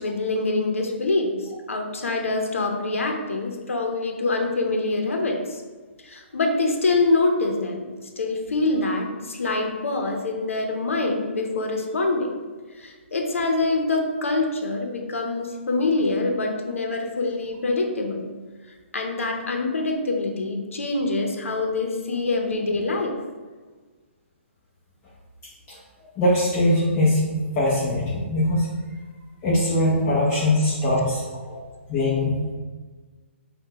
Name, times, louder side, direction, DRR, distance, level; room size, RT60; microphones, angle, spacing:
voice 1, 0.0-5.6 6.0-12.3 12.7-18.3 18.9-23.1 31.5-31.6, left 3 dB, 90° left, 2 dB, 0.7 m, -25 dB
voice 2, 26.2-28.7 29.4-31.2 31.9-32.5, left 1 dB, 20° left, -7 dB, 0.7 m, -21 dB
5.2 x 2.3 x 2.8 m, 1.4 s
hypercardioid pair, 155°, 7 cm